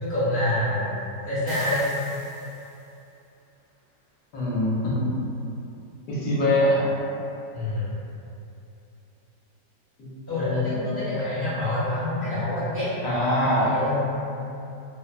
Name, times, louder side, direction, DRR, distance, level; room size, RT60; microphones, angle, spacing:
voice 1, 0.0-1.9 7.5-7.9 10.3-12.9 13.6-14.1, left 1 dB, 20° left, -13 dB, 0.8 m, -27 dB
sound 1, 1.5-3.0, left 2 dB, 85° left, 0.6 m, -45 dB
voice 2, 4.3-5.1 6.1-6.9 10.3-11.0 13.0-13.7, left 1 dB, 70° left, -8 dB, 1.0 m, -23 dB
2.9 x 2.0 x 2.4 m, 2.7 s
omnidirectional pair, 1.8 m